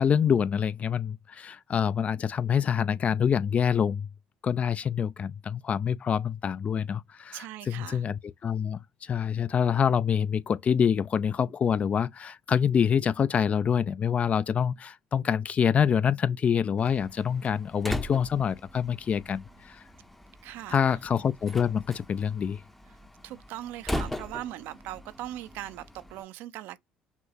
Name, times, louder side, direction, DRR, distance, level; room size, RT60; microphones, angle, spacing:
voice 1, 0.0-4.1 4.4-19.8 20.7-22.6, left 7 dB, 40° left, 0.4 m, -26 dB
voice 2, 7.3-8.0 20.4-21.0 23.2-26.8, right 14 dB, 75° right, 0.5 m, -40 dB
Slam, 16.8-26.2, left 1 dB, 5° left, 0.7 m, -40 dB
6.0 x 2.0 x 3.9 m
supercardioid pair, 75°, 3 cm